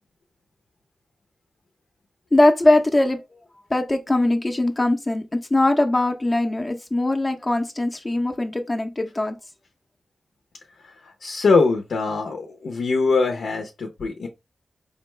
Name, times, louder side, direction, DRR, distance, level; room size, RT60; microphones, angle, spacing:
voice 1, 2.3-3.2 3.7-5.2 5.5-9.3, left 2 dB, 30° left, 0.6 m, -20 dB
voice 2, 10.8-14.3, left 4 dB, 85° left, 0.6 m, -22 dB
4.9 x 2.2 x 3.2 m
cardioid pair, 50°, 0 cm